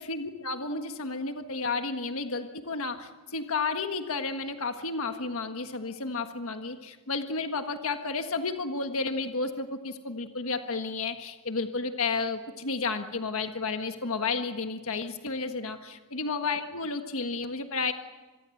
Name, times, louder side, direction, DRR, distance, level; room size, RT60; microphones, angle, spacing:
voice 1, 0.0-17.9, left 4 dB, 65° left, 6 dB, 1.6 m, -32 dB
26.5 x 22.0 x 7.9 m, 1.3 s
head